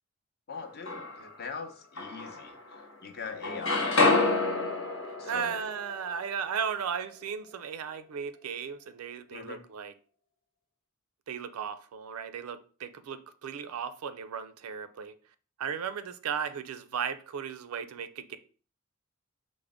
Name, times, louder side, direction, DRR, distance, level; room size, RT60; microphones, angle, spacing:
sound 1, 0.5-1.4 2.0-3.0 3.2-7.2, left 3 dB, 65° left, 1.0 m, -29 dB
voice 1, 0.5-2.6 3.0-4.5 5.2-5.6 9.3-9.6, left 5 dB, 50° left, 0.6 m, -41 dB
voice 2, 5.1-9.9 11.3-15.1 15.6-18.4, right 7 dB, 85° right, 0.4 m, -36 dB
4.9 x 2.1 x 3.5 m
head